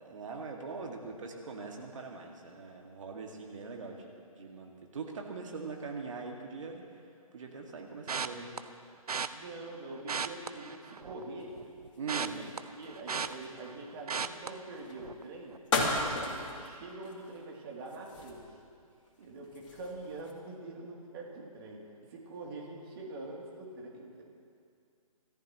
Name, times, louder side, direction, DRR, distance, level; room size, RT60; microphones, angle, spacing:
voice 1, 0.0-6.8 7.3-8.5 12.0-12.4 16.1-16.4, right 4 dB, 55° right, 1 dB, 2.2 m, -42 dB
sound 1, 8.1-8.6 9.1-9.3 10.0-11.2 11.5-13.8 14.1-14.5 15.0-15.2 15.5-15.6, right 6 dB, 80° right, 0.7 m, -35 dB
voice 2, 9.3-11.6 12.2-12.5 12.8-15.6 16.1-18.4 19.2-21.8 22.1-24.2, right 2 dB, 40° right, -2 dB, 3.1 m, -44 dB
sound 2, 11.4-13.8 14.7-15.0 15.7-16.7 17.0-17.4 17.8-18.7 19.1-20.3, left 2 dB, 55° left, 3.2 m, -35 dB
26.0 x 14.0 x 3.1 m, 2.3 s
figure-of-eight pair, 140°, 19 cm